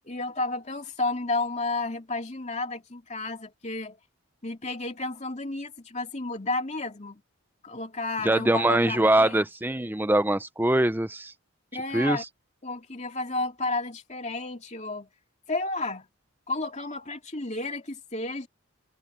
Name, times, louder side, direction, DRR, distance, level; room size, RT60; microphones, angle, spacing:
voice 1, 0.1-4.0 4.4-7.2 7.6-9.4 11.7-12.2 12.6-15.1 15.5-16.1 16.5-18.5, left 2 dB, 30° left, 2.7 m, -32 dB
voice 2, 8.2-11.3 11.9-12.2, right 1 dB, 10° right, 0.6 m, -23 dB
head